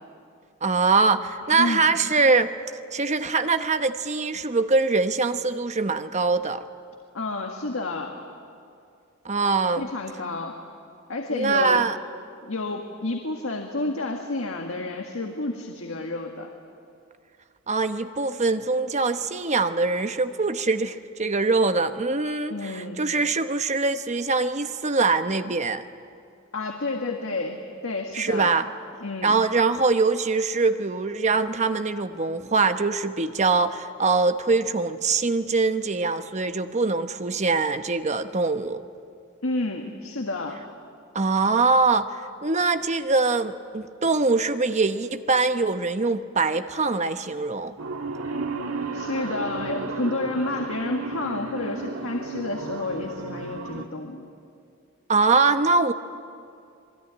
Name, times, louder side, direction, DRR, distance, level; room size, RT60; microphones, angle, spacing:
voice 1, 0.6-2.5 2.9-6.6 9.2-9.9 11.3-12.0 17.7-25.8 28.1-28.6 29.2-38.8 41.1-47.7 55.1-55.9, right 3 dB, 35° right, 9 dB, 0.9 m, -23 dB
voice 2, 1.5-1.9 7.1-8.2 9.8-10.6 11.1-11.8 12.5-16.5 22.5-23.0 26.5-28.5 29.0-29.4 39.4-40.6 48.9-54.3, left 2 dB, 75° left, 2 dB, 1.8 m, -30 dB
sound 1, 47.8-53.9, right 3 dB, 85° right, 1.7 m, -33 dB
27.0 x 20.5 x 9.7 m, 2.4 s
head